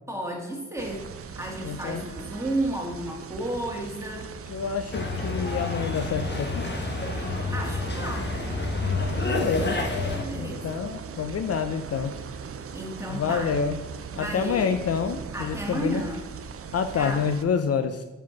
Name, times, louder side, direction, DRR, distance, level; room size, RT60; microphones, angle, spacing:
voice 1, 0.1-1.1 1.4-4.3 7.5-8.3 10.1-10.8 12.7-13.5 14.1-14.7 15.3-16.2 17.0-17.3, right 1 dB, 10° right, -1 dB, 2.2 m, -32 dB
sound 1, 0.8-17.4, right 6 dB, 50° right, 0.6 m, -40 dB
voice 2, 1.6-2.0 4.5-6.7 8.8-9.8 10.3-12.2 13.1-13.8 14.2-16.0 16.7-18.0, left 6 dB, 55° left, 8 dB, 0.6 m, -28 dB
sound 2, 4.9-10.2, left 2 dB, 35° left, 1.3 m, -29 dB
5.6 x 4.9 x 5.9 m, 1.1 s
cardioid pair, 65°, 29 cm